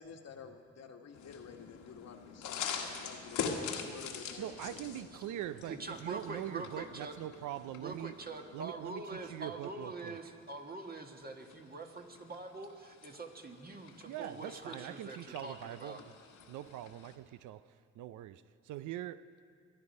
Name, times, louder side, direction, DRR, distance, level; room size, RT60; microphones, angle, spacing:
voice 1, 0.0-5.1, left 6 dB, 60° left, 1.3 m, -51 dB
sound 1, 1.1-17.2, left 6 dB, 90° left, 1.5 m, -45 dB
voice 2, 4.4-8.1 8.5-10.3 14.1-16.0 16.5-19.3, right 12 dB, 75° right, 0.5 m, -43 dB
voice 3, 5.7-7.1 7.8-16.0, right 3 dB, 30° right, 1.5 m, -44 dB
23.5 x 9.9 x 5.3 m
cardioid pair, 90°, 30 cm